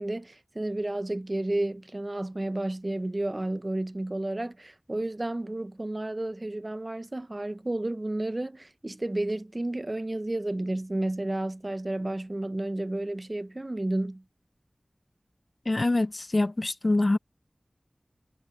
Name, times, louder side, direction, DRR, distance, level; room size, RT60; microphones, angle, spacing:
voice 1, 0.0-14.2, right 1 dB, 40° right, 0.8 m, -31 dB
voice 2, 15.7-17.2, left 2 dB, 55° left, 0.5 m, -25 dB
wide cardioid pair, 40°, 0 cm